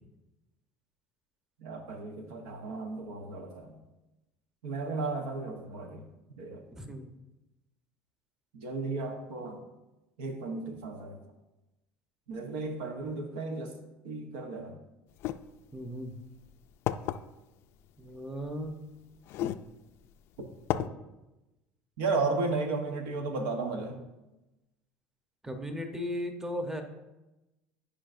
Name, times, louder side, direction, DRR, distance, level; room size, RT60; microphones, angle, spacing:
voice 1, 1.6-3.8 4.6-6.0 6.4-6.6 8.5-9.6 10.2-11.2 12.3-13.8 14.0-14.7 19.4-19.5 20.8-20.9 22.0-24.0, right 3 dB, 85° right, 4 dB, 1.0 m, -34 dB
voice 2, 6.7-7.1 15.7-16.1 18.0-18.8 25.4-26.8, equal, 10° right, 5 dB, 0.9 m, -36 dB
sound 1, 15.2-15.4 16.2-16.3 16.9-17.2 18.4-18.5 19.3-19.6 20.1-20.2 20.7-20.9, left 13 dB, 60° left, 0.3 m, -31 dB
11.0 x 5.0 x 2.6 m, 1.0 s
supercardioid pair, 100°, 5 cm